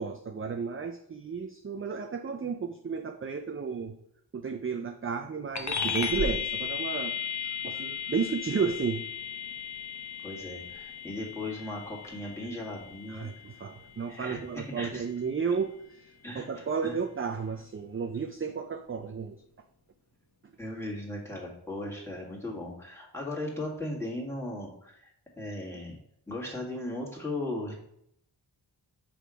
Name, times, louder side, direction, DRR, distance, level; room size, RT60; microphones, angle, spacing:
voice 1, 0.0-3.9 4.3-7.1 7.6-9.0 13.1-15.7 16.0-19.4, right 5 dB, 30° right, 5 dB, 0.4 m, -33 dB
sound 1, 5.5-15.4, left 6 dB, 40° left, 0.8 m, -36 dB
voice 2, 10.2-13.3 14.1-15.1 16.2-17.0 20.6-25.1 25.4-26.0 26.3-27.7, left 1 dB, 5° left, -3 dB, 1.9 m, -37 dB
6.2 x 3.4 x 5.0 m, 0.72 s
wide cardioid pair, 70°, 45 cm